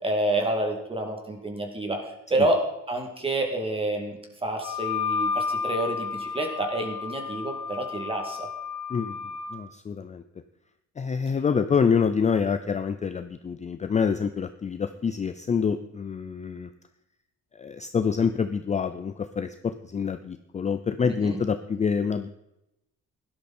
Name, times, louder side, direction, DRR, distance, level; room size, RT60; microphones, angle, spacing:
voice 1, 0.0-8.5 21.0-21.4, right 1 dB, 15° right, 3 dB, 2.5 m, -28 dB
Wind instrument woodwind instrument, 4.6-9.6, left 5 dB, 65° left, 1.8 m, -31 dB
voice 2, 8.9-10.2 11.0-16.7 17.6-22.3, left 6 dB, 20° left, 10 dB, 0.5 m, -26 dB
17.0 x 12.0 x 4.3 m, 0.87 s
cardioid pair, 175°, 32 cm